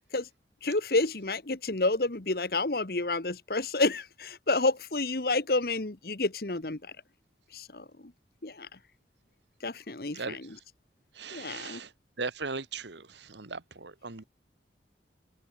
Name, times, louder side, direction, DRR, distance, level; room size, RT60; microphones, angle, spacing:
voice 1, 0.6-6.9 7.5-8.1 8.4-8.8 9.6-10.5 11.3-11.8, left 2 dB, 55° left, 1.3 m, -29 dB
voice 2, 10.1-10.6 11.1-11.9 12.2-14.2, right 4 dB, 80° right, 1.6 m, -38 dB
head